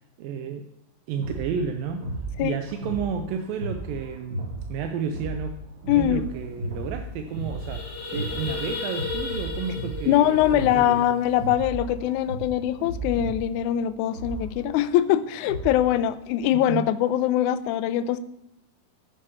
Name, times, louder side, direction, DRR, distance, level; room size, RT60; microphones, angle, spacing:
voice 1, 0.2-0.7 1.1-2.1 2.4-5.6 6.0-11.0 16.5-16.9, right 6 dB, 80° right, 6 dB, 2.4 m, -32 dB
sound 1, 1.2-16.0, right 1 dB, 30° right, 3.0 m, -35 dB
voice 2, 5.9-6.2 10.1-18.2, left 11 dB, 85° left, 13 dB, 1.8 m, -22 dB
sound 2, 6.3-6.4 6.6-6.9 7.2-11.5, left 5 dB, 40° left, 1.0 m, -35 dB
9.9 x 9.8 x 5.5 m, 0.80 s
omnidirectional pair, 4.1 m